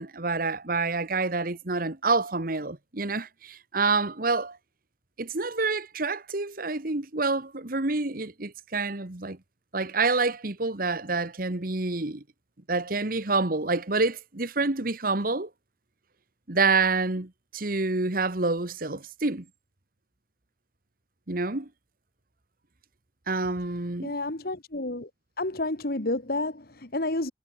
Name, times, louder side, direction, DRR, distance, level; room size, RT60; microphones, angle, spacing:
voice 1, 0.0-4.6 5.2-9.4 9.7-12.2 12.7-15.5 16.5-19.4 21.3-21.7 23.3-24.1, right 3 dB, 55° right, 1.7 m, -27 dB
voice 2, 24.0-25.1 25.4-27.3, left 2 dB, 60° left, 2.2 m, -30 dB
head